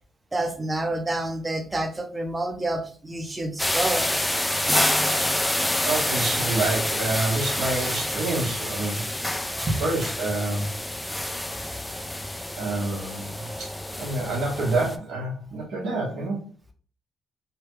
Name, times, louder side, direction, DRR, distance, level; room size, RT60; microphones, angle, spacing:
voice 1, 0.3-4.1 9.5-9.8, right 1 dB, 20° right, 5 dB, 0.7 m, -28 dB
sound 1, 3.6-15.0, left 1 dB, 10° left, 0.4 m, -27 dB
voice 2, 5.8-9.1 9.8-10.7 12.6-13.7 14.0-16.5, right 2 dB, 80° right, -3 dB, 1.3 m, -27 dB
3.4 x 2.3 x 3.1 m, 0.42 s
cardioid pair, 90°, 0 cm